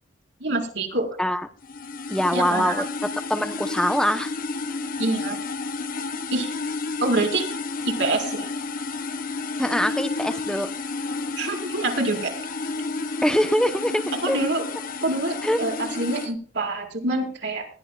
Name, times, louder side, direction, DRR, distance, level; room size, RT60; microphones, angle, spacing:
voice 1, 0.4-1.1 2.3-2.7 5.0-5.4 6.3-6.5 7.0-7.5 7.8-8.5 11.4-12.3 14.2-14.6 15.0-17.7, right 2 dB, 70° right, 0 dB, 4.7 m, -26 dB
sound 1, 1.6-16.3, left 3 dB, 50° left, 1.1 m, -31 dB
voice 2, 2.1-2.8 3.3-4.3 9.6-10.7 13.2-14.4 15.4-15.6, equal, 5° left, 7 dB, 0.9 m, -23 dB
20.5 x 12.5 x 2.4 m, 0.42 s
head